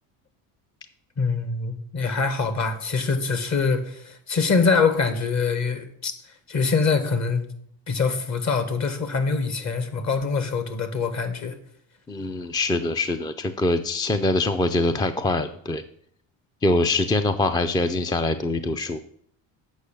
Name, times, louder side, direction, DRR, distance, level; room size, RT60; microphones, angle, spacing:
voice 1, 1.2-7.4 7.9-11.6, left 4 dB, 45° left, 1.5 m, -24 dB
voice 2, 12.1-15.8 16.6-19.0, left 2 dB, 10° left, 0.3 m, -24 dB
8.1 x 5.5 x 6.8 m
cardioid pair, 105°, 40 cm